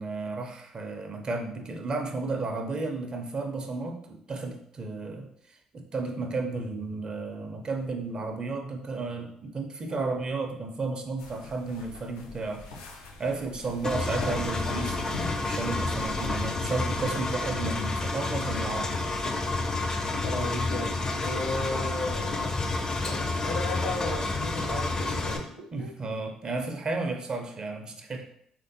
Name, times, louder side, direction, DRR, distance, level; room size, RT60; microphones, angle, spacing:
voice 1, 0.0-5.3 5.7-12.6 13.2-19.0 25.7-28.2, right 3 dB, 40° right, 4 dB, 0.5 m, -33 dB
sound 1, 11.2-16.8, left 3 dB, 90° left, 0.4 m, -42 dB
Engine, 13.8-25.4, left 2 dB, 30° left, 0.5 m, -29 dB
voice 2, 20.2-20.9 21.2-22.6 23.0-25.9, left 2 dB, 70° left, 0 dB, 0.9 m, -35 dB
3.3 x 2.5 x 2.6 m, 0.69 s
hypercardioid pair, 55°, 2 cm